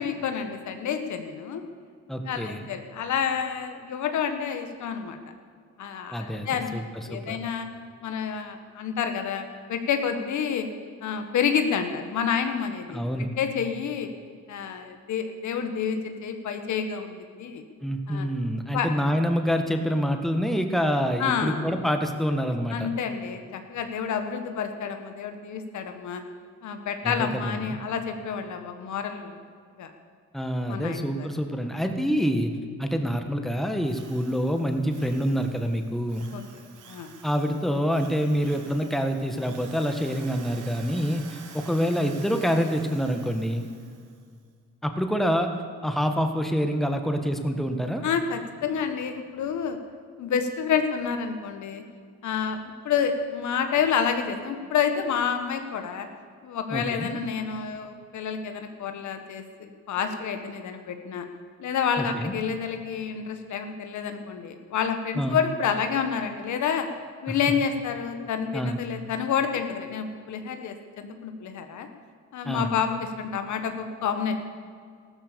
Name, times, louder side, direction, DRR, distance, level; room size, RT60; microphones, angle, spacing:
voice 1, 0.0-1.6 2.3-5.2 5.8-6.8 7.1-7.7 8.0-10.7 11.0-13.0 13.4-14.1 14.5-17.6 18.1-18.3 18.7-18.9 21.2-21.6 22.7-26.2 26.6-29.4 29.8-29.9 30.7-31.3 36.3-37.1 48.0-49.8 50.2-51.8 52.2-52.6 52.8-56.1 56.4-61.3 61.6-66.9 67.2-71.9 72.3-74.4, left 7 dB, 70° left, 6 dB, 1.6 m, -29 dB
voice 2, 2.1-2.7 6.1-7.4 12.9-13.3 17.8-22.9 27.0-27.7 30.3-32.5 32.8-36.3 37.2-43.7 44.8-45.5 45.8-48.0 56.7-57.2 62.0-62.3 65.2-65.4 67.3-67.4 68.5-68.8 72.5-72.7, equal, ahead, 5 dB, 1.6 m, -26 dB
Drill, 33.8-44.3, right 7 dB, 85° right, 1.7 m, -49 dB
15.0 x 13.0 x 7.0 m, 2.1 s
cardioid pair, 90°, 30 cm